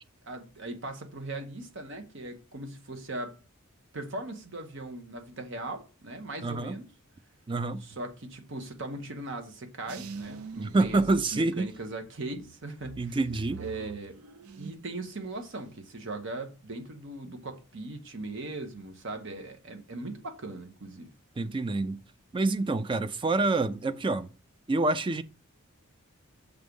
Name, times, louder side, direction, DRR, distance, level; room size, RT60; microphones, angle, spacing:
voice 1, 0.2-3.4 3.9-6.9 7.8-11.0 11.3-13.2 13.6-14.2 14.6-21.1, right 2 dB, 60° right, 1.0 m, -39 dB
voice 2, 6.4-6.8 7.5-7.8 10.6-11.7 13.0-13.6 21.4-22.0 22.3-24.3 24.7-25.2, right 2 dB, 25° right, 0.4 m, -27 dB
sound 1, 9.9-11.9 12.4-15.0 15.3-15.8, right 5 dB, 85° right, 0.5 m, -45 dB
6.5 x 3.5 x 5.3 m
head